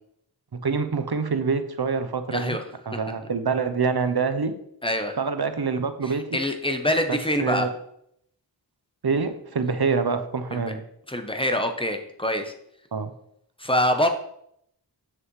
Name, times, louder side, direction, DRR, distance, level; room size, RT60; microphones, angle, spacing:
voice 1, 0.6-2.6 2.9-4.5 5.2-6.4 7.4-7.7 9.0-10.8 12.9-13.1, right 5 dB, 60° right, 10 dB, 0.8 m, -25 dB
voice 2, 2.3-2.6 2.9-3.0 4.8-5.2 6.0-7.7 10.5-10.8 11.1-12.5 13.6-14.1, left 1 dB, 10° left, 5 dB, 0.8 m, -25 dB
7.7 x 6.3 x 3.2 m, 0.72 s
wide cardioid pair, 40°, 44 cm